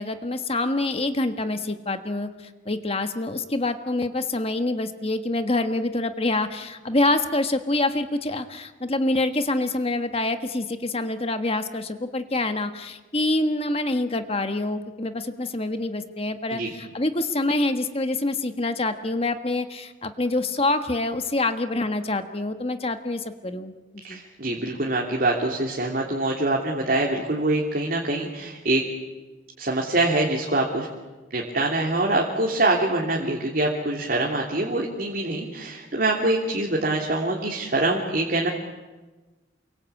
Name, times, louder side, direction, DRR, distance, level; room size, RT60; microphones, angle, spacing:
voice 1, 0.0-2.3 2.6-23.7 24.1-24.2, left 2 dB, 30° left, 8 dB, 1.5 m, -26 dB
voice 2, 24.0-28.8 29.6-30.9 31.3-38.5, right 2 dB, 50° right, -1 dB, 3.2 m, -24 dB
29.0 x 23.0 x 8.5 m, 1.2 s
head